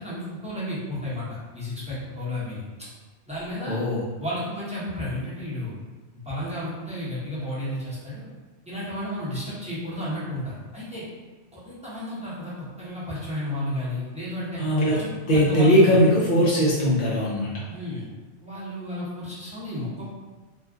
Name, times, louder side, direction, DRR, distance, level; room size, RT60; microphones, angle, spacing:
voice 1, 0.0-2.6 3.3-3.8 4.2-5.8 6.2-8.3 8.7-11.0 11.5-14.6 14.9-16.0 17.7-18.1 18.4-20.1, left 1 dB, 5° right, -10 dB, 0.8 m, -32 dB
voice 2, 3.7-4.0 14.6-15.0 15.3-17.6, equal, 55° left, -6 dB, 0.6 m, -20 dB
2.4 x 2.3 x 3.5 m, 1.3 s
omnidirectional pair, 1.2 m